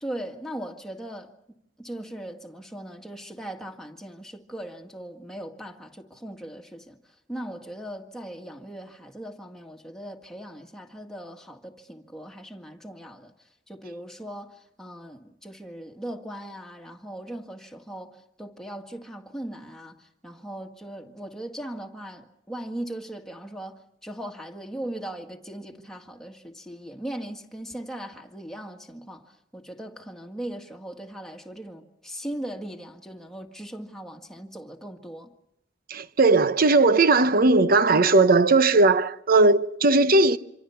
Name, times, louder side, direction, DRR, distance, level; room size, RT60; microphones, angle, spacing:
voice 1, 0.0-1.3 1.8-7.0 7.3-13.3 13.7-35.3, right 1 dB, 5° left, 1.9 m, -39 dB
voice 2, 35.9-40.4, right 3 dB, 50° right, 0.9 m, -18 dB
27.0 x 25.5 x 5.8 m
head